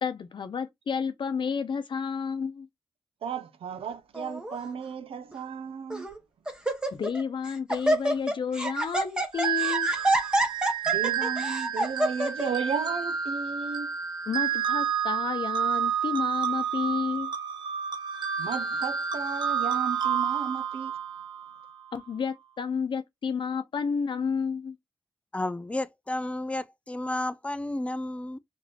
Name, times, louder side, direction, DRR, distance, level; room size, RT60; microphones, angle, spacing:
voice 1, 0.0-2.7 6.9-9.9 14.3-17.3 21.9-24.8, left 6 dB, 60° left, 0.7 m, -31 dB
voice 2, 3.2-6.1 10.8-13.9 18.4-20.9, right 7 dB, 85° right, 0.6 m, -34 dB
Laughter, 4.1-4.6 5.3-5.4 5.9-6.2 6.5-7.2 7.5-12.5, right 1 dB, 10° right, 0.8 m, -27 dB
sound 1, 9.3-21.7, right 8 dB, 55° right, 0.8 m, -30 dB
voice 3, 25.3-28.4, left 1 dB, 15° left, 0.3 m, -32 dB
3.3 x 2.6 x 3.6 m
wide cardioid pair, 110°, 9 cm